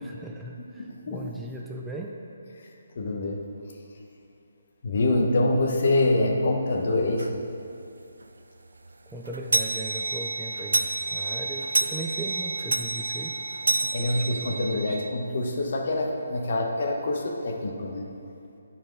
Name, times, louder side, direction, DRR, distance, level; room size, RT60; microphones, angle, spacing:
voice 1, 0.0-2.2 9.1-13.4 13.8-15.0, right 2 dB, 5° right, -1 dB, 0.5 m, -38 dB
voice 2, 0.8-1.2 3.0-3.4 4.8-7.3 13.9-18.0, left 2 dB, 55° left, 1 dB, 1.1 m, -25 dB
sound 1, 7.2-7.3 7.8-7.9 8.2-8.3 8.7-15.1, right 3 dB, 90° right, 0.5 m, -29 dB
9.3 x 4.7 x 5.3 m, 2.7 s
hypercardioid pair, 155°, 0 cm